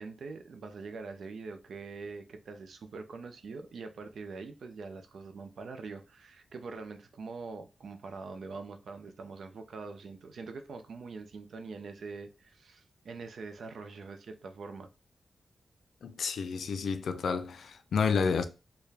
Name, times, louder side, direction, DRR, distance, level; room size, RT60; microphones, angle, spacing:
voice 1, 0.0-14.9, right 4 dB, 75° right, 0.5 m, -44 dB
voice 2, 16.0-18.4, left 5 dB, 90° left, 0.4 m, -30 dB
4.6 x 2.2 x 3.3 m
wide cardioid pair, 140°, 0 cm